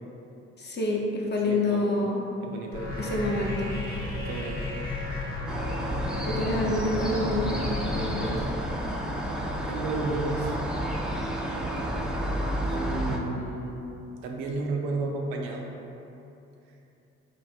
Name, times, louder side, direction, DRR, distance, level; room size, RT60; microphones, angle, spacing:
voice 1, 0.6-2.2 3.0-3.7 6.2-7.6 7.9-8.4, left 2 dB, 30° left, -2 dB, 0.8 m, -27 dB
voice 2, 1.5-1.9 2.4-2.9 4.2-4.7 9.7-10.6 12.7-13.9 14.2-15.7, right 3 dB, 70° right, 1 dB, 0.5 m, -32 dB
sound 1, 2.7-8.3, left 2 dB, 75° left, 0.9 m, -33 dB
sound 2, 5.5-13.2, equal, ahead, 0.5 m, -31 dB
3.2 x 2.7 x 4.3 m, 2.9 s
figure-of-eight pair, 45°, 34 cm